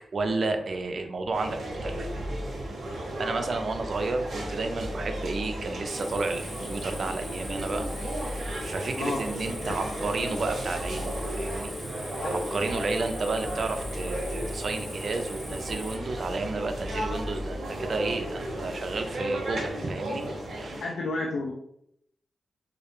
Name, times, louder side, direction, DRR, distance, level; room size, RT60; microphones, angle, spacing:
voice 1, 0.1-2.1 3.0-20.3 20.5-20.8, right 3 dB, 60° right, 6 dB, 0.3 m, -32 dB
sound 1, 1.3-20.8, right 1 dB, 85° right, 0.7 m, -35 dB
sound 2, 1.7-18.6, left 1 dB, 75° left, 0.7 m, -41 dB
Cricket, 5.9-16.0, equal, 15° left, 0.5 m, -43 dB
voice 2, 9.0-9.3 9.6-9.8 12.2-12.4 20.8-21.5, left 2 dB, 90° left, -1 dB, 0.3 m, -31 dB
2.2 x 2.0 x 3.0 m, 0.76 s
cardioid pair, 75°, 0 cm